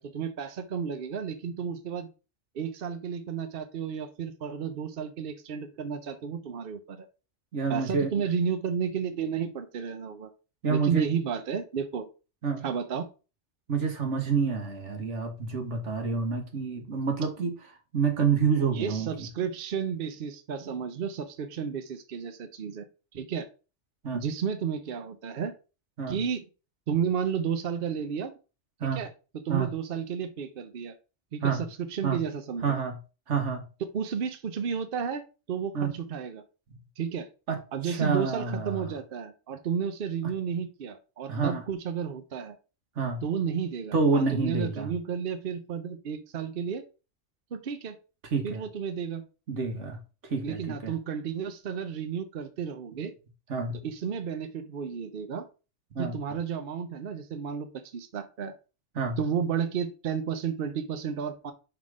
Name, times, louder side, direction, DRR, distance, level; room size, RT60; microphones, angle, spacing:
voice 1, 0.0-2.1 2.5-7.1 7.7-10.3 10.7-12.1 12.6-13.1 18.7-22.9 23.1-23.5 24.1-25.5 26.1-26.4 26.9-28.3 28.8-29.1 29.4-31.0 31.3-32.8 33.9-36.4 37.0-37.3 37.7-42.5 43.2-46.8 47.5-48.0 48.4-49.2 50.4-53.1 53.8-55.5 56.0-58.5 59.2-61.5, right 7 dB, 55° right, 0.8 m, -32 dB
voice 2, 7.5-8.1 10.6-11.1 12.4-12.6 13.7-17.6 17.9-19.3 24.0-24.2 26.0-26.2 28.8-29.0 29.5-29.7 31.4-31.6 32.0-32.2 32.6-33.0 33.3-33.6 35.7-35.9 37.5-38.8 41.3-41.6 42.9-43.2 43.9-44.9 48.3-48.6 49.5-50.9 53.5-53.8 55.9-56.2 58.9-59.2, right 5 dB, 80° right, 1.7 m, -28 dB
5.8 x 3.8 x 4.8 m
omnidirectional pair, 1.2 m